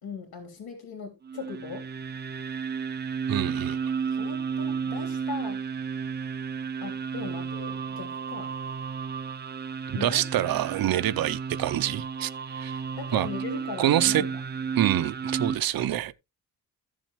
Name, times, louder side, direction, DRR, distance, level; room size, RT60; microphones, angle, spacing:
voice 1, 0.0-1.9 4.2-5.6 6.8-8.5 9.9-10.2 12.9-14.4, left 5 dB, 75° left, 3.4 m, -38 dB
sound 1, 1.2-15.5, right 6 dB, 30° right, 0.5 m, -33 dB
voice 2, 3.3-3.9 9.9-12.8 13.1-13.3 13.8-14.2 14.8-16.1, right 12 dB, 70° right, 0.7 m, -26 dB
14.0 x 7.4 x 3.1 m
wide cardioid pair, 170°, 37 cm